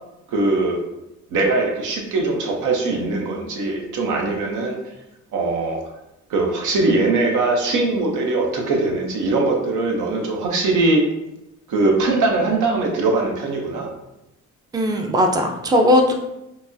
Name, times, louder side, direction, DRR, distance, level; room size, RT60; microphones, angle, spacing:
voice 1, 0.3-0.8 1.3-4.8 5.3-5.8 6.3-11.0 11.7-13.9, right 3 dB, 85° right, 1 dB, 0.7 m, -21 dB
voice 2, 14.7-16.1, left 1 dB, 15° right, 3 dB, 0.4 m, -18 dB
4.5 x 2.0 x 2.6 m, 0.90 s
cardioid pair, 90°, 30 cm